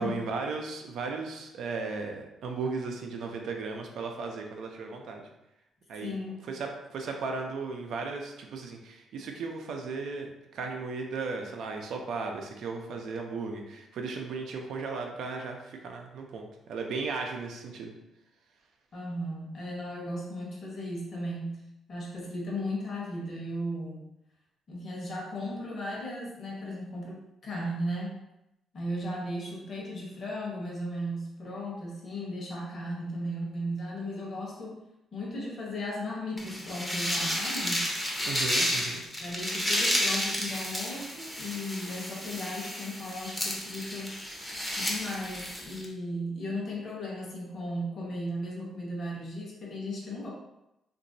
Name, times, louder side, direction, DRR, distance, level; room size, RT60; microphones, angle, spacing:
voice 1, 0.0-5.3 5.9-6.1 6.5-17.9 38.2-39.0, right 4 dB, 75° right, 2 dB, 0.5 m, -36 dB
voice 2, 6.0-6.4 18.9-24.0 24.7-28.2 28.7-34.8 35.1-37.9 39.2-44.1 44.8-50.3, equal, 50° left, -4 dB, 1.0 m, -36 dB
sound 1, 36.4-45.9, equal, 10° left, 0.6 m, -31 dB
2.9 x 2.6 x 2.6 m, 0.89 s
cardioid pair, 90°, 0 cm